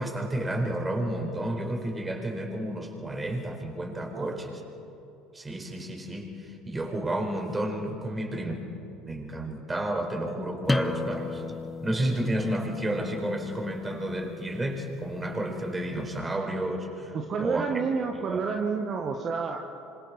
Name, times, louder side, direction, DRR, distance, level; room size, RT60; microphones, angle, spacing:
voice 1, 0.0-4.5 5.3-8.6 9.0-11.4 11.8-17.6 18.3-18.4, right 1 dB, 20° right, 2 dB, 4.6 m, -31 dB
sound 1, 10.7-16.1, left 3 dB, 15° left, 1.1 m, -35 dB
voice 2, 17.1-19.6, right 5 dB, 45° right, 3 dB, 1.6 m, -29 dB
26.5 x 26.0 x 4.2 m, 2.9 s
hypercardioid pair, 65°, 0 cm